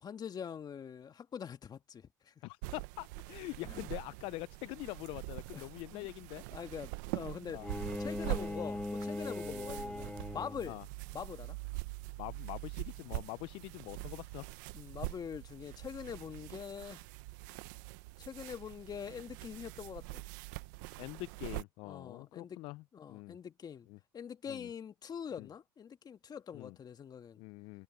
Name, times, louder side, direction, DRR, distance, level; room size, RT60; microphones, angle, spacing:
voice 1, 0.0-2.3 3.7-3.9 5.5-6.1 6.5-7.6 8.0-10.8 11.1-11.6 14.7-17.0 18.2-20.2 21.8-22.6 22.9-23.9 24.1-27.4, left 7 dB, 45° left, 1.6 m, -44 dB
voice 2, 2.4-6.4 7.5-7.7 8.3-8.4 10.7-10.9 12.2-14.5 21.0-22.8 23.1-23.4 23.9-24.0 24.5-24.7 25.4-25.5 26.5-26.8 27.4-27.8, left 22 dB, 70° left, 0.4 m, -44 dB
sound 1, 2.6-21.6, right 22 dB, 80° right, 0.8 m, -44 dB
Bowed string instrument, 7.6-10.8, left 2 dB, 10° left, 1.5 m, -40 dB
hypercardioid pair, 65°, 10 cm